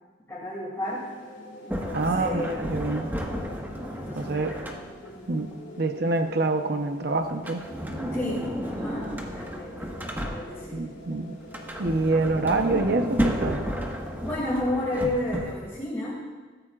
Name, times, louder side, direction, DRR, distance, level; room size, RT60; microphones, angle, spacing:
voice 1, 0.3-1.1 1.6-2.6 3.9-4.7 8.1-10.8 14.2-16.2, left 1 dB, 15° left, -6 dB, 2.6 m, -32 dB
sound 1, 0.8-14.7, left 1 dB, 75° left, 3.1 m, -46 dB
Sliding door, 1.7-5.2 7.3-10.8 11.4-15.8, equal, 10° right, 1.4 m, -32 dB
voice 2, 1.9-3.1 4.2-4.5 5.3-7.7 10.7-11.4 11.8-13.6, right 3 dB, 60° right, 6 dB, 0.9 m, -26 dB
21.5 x 14.0 x 2.5 m, 1.4 s
head